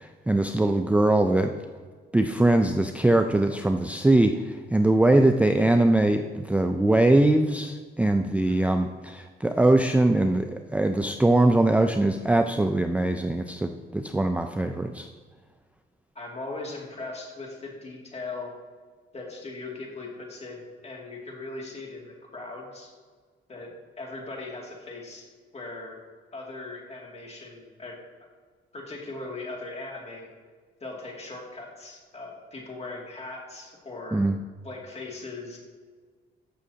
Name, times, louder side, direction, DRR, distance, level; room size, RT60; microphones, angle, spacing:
voice 1, 0.0-1.5 2.1-15.1 34.1-34.3, right 2 dB, 5° right, 6 dB, 0.4 m, -22 dB
voice 2, 8.4-8.8 16.1-18.5 19.1-22.9 23.5-25.3 25.5-26.0 26.3-28.0 28.7-30.3 30.8-34.2 34.6-35.6, left 3 dB, 30° left, -1 dB, 2.4 m, -39 dB
14.0 x 6.1 x 2.8 m, 1.5 s
cardioid pair, 90°, 20 cm